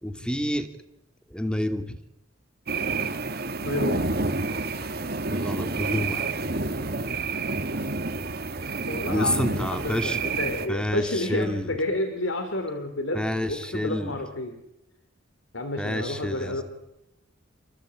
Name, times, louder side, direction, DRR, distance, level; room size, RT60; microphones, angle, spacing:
voice 1, 0.0-0.7 1.3-2.0 5.3-6.3 9.1-10.2 10.7-11.7 13.1-14.1 15.8-16.6, left 1 dB, 5° left, 8 dB, 2.5 m, -29 dB
sound 1, 2.7-10.7, right 3 dB, 55° right, 2.5 m, -29 dB
voice 2, 3.6-4.1 8.9-14.6 15.5-16.6, left 2 dB, 90° left, 7 dB, 3.1 m, -30 dB
29.0 x 21.5 x 8.8 m, 0.89 s
head